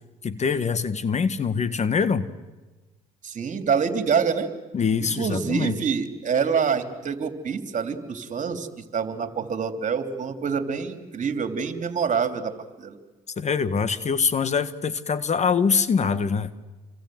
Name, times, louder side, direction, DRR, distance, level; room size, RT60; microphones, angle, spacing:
voice 1, 0.2-2.3 4.7-5.8 13.4-16.5, left 5 dB, 40° left, 13 dB, 1.6 m, -24 dB
voice 2, 3.2-4.5 5.0-8.7 8.9-12.5 12.8-13.0, right 6 dB, 45° right, 7 dB, 3.2 m, -26 dB
28.5 x 25.0 x 7.8 m, 1.2 s
hypercardioid pair, 65°, 19 cm